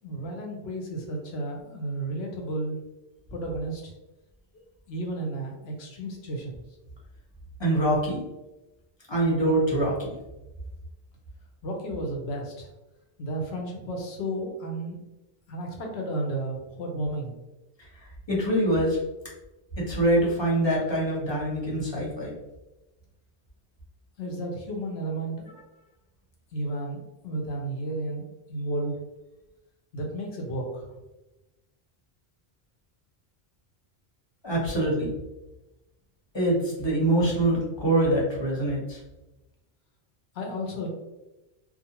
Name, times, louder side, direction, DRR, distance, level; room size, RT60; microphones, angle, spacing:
voice 1, 0.0-2.8 3.3-3.9 4.9-6.6 11.6-12.7 13.2-15.0 15.5-17.3 24.2-25.6 26.5-29.0 29.9-31.0 40.3-40.9, right 1 dB, 85° left, 1 dB, 0.9 m, -33 dB
voice 2, 7.6-8.2 9.1-10.1 18.0-19.0 19.9-22.3 34.4-35.1 36.3-39.0, right 1 dB, 30° left, -5 dB, 0.8 m, -24 dB
2.5 x 2.1 x 2.8 m, 1.0 s
omnidirectional pair, 1.0 m